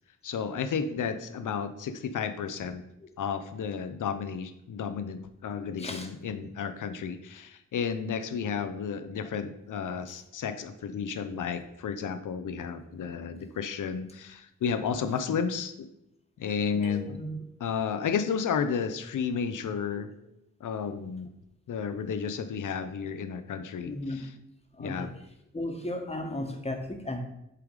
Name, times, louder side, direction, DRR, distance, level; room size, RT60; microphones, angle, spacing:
voice 1, 0.2-2.8 3.2-15.7 16.4-17.2 17.6-20.1 20.6-21.3 21.7-24.3 24.8-25.1, left 6 dB, 70° left, 10 dB, 0.7 m, -32 dB
voice 2, 5.8-6.1 9.2-9.3 17.1-17.3 23.8-24.2 24.7-25.1 25.5-27.2, left 1 dB, 20° left, 4 dB, 1.4 m, -35 dB
sound 1, 16.8-17.9, equal, 50° right, 1.9 m, -49 dB
8.5 x 3.5 x 4.7 m, 0.83 s
cardioid pair, 60°, 32 cm